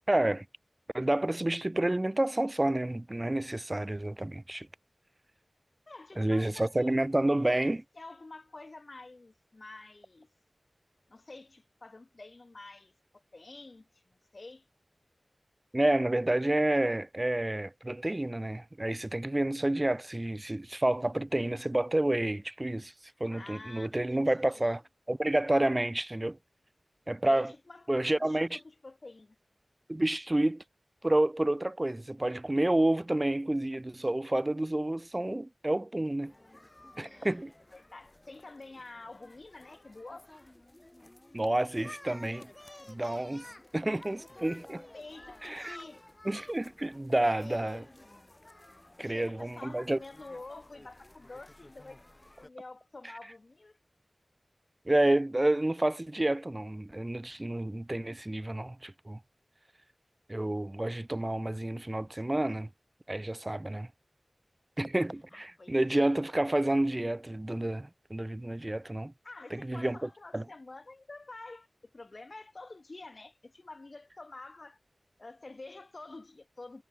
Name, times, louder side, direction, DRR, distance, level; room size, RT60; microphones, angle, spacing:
voice 1, 0.1-0.4 0.9-4.7 6.2-7.8 15.7-22.9 23.2-24.8 25.1-26.4 27.1-27.5 27.9-28.6 29.9-30.6 31.0-36.3 37.0-37.5 41.3-42.5 42.9-43.5 43.7-44.8 45.4-45.8 46.2-47.8 49.0-50.0 54.9-59.2 60.3-62.7 63.1-63.9 64.8-69.1 69.5-70.4, right 1 dB, 30° right, 0.5 m, -29 dB
voice 2, 5.9-7.0 7.4-10.3 11.1-14.0 14.3-14.6 23.3-24.8 27.2-29.4 37.0-37.4 37.7-40.3 44.7-46.0 47.3-47.9 49.0-52.0 52.4-53.8 65.3-66.0 69.2-71.7 71.9-74.8 75.2-76.8, left 2 dB, 60° left, 1.2 m, -48 dB
sound 1, 36.2-52.5, left 1 dB, 30° left, 1.6 m, -53 dB
wide cardioid pair, 40°, 0 cm